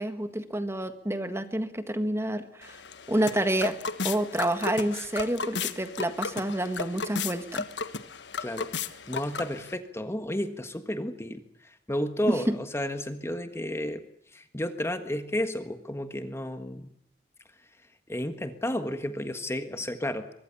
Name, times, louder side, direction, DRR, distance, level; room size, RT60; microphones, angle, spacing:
voice 1, 0.0-2.8 3.1-3.8 4.0-7.7 12.2-12.5, right 1 dB, 15° right, 9 dB, 1.6 m, -28 dB
sound 1, 2.6-9.7, left 4 dB, 90° left, 1.4 m, -35 dB
voice 2, 8.4-8.7 9.1-14.0 14.3-16.9 18.1-20.3, left 1 dB, 15° left, 8 dB, 1.5 m, -32 dB
24.0 x 22.0 x 7.1 m, 0.71 s
head